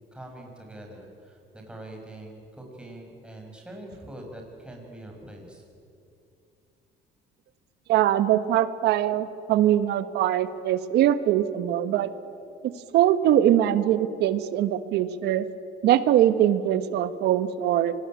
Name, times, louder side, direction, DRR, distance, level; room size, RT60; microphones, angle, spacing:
voice 1, 0.1-1.4 1.7-5.6, right 1 dB, 5° right, 1 dB, 6.3 m, -43 dB
voice 2, 7.9-12.1 12.9-15.4 15.8-17.9, right 11 dB, 80° right, 12 dB, 1.4 m, -22 dB
26.0 x 20.5 x 9.0 m, 2.6 s
cardioid pair, 110°, 17 cm